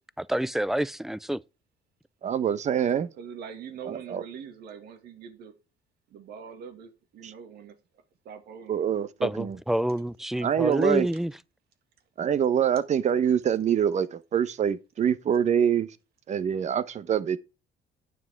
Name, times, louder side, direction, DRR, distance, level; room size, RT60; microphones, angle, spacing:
voice 1, 0.2-1.4 9.2-11.3, right 1 dB, ahead, 0.4 m, -28 dB
voice 2, 2.2-3.1 3.9-4.2 7.2-7.3 8.7-9.6 10.4-11.1 12.2-15.9 16.3-17.4, right 8 dB, 45° right, 0.9 m, -25 dB
voice 3, 3.1-5.5 6.1-7.8 8.2-8.9, right 7 dB, 70° right, 2.1 m, -43 dB
9.5 x 6.2 x 4.6 m
cardioid pair, 110°, 17 cm